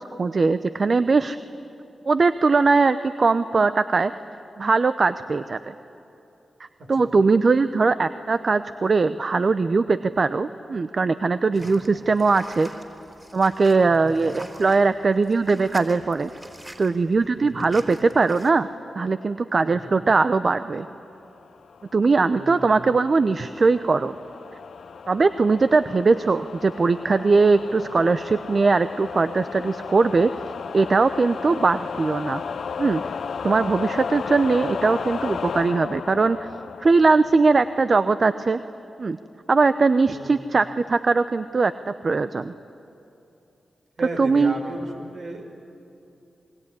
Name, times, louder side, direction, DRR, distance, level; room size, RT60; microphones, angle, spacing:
voice 1, 0.0-1.4 2.1-4.1 4.6-5.7 6.9-12.7 13.3-16.3 16.8-18.7 19.0-20.9 21.9-24.2 25.1-30.3 30.7-32.4 32.8-33.0 33.4-36.5 36.8-38.6 39.0-39.2 39.5-41.7 42.0-42.5 44.0-44.6, right 4 dB, 55° right, 12 dB, 0.8 m, -20 dB
sound 1, 11.5-18.5, right 1 dB, 20° right, 4.4 m, -45 dB
voice 2, 11.5-11.9 13.8-14.3 17.4-17.8 19.6-20.0 22.2-23.0 40.1-40.4 44.0-45.5, right 1 dB, 75° right, 1 dB, 5.8 m, -36 dB
sound 2, 21.4-37.9, left 6 dB, 75° left, 0.6 m, -34 dB
27.0 x 22.0 x 9.9 m, 2.8 s
supercardioid pair, 40°, 0 cm